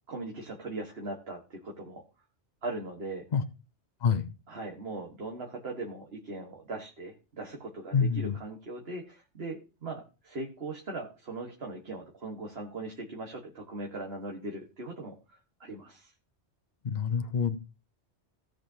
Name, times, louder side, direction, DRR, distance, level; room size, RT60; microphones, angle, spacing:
voice 1, 0.1-2.0 2.6-3.3 4.5-15.2 15.6-16.1, right 2 dB, 60° right, 1 dB, 1.7 m, -39 dB
voice 2, 7.9-8.3 16.8-17.6, left 6 dB, 45° left, 10 dB, 0.9 m, -27 dB
17.5 x 6.6 x 2.8 m, 0.31 s
omnidirectional pair, 1.2 m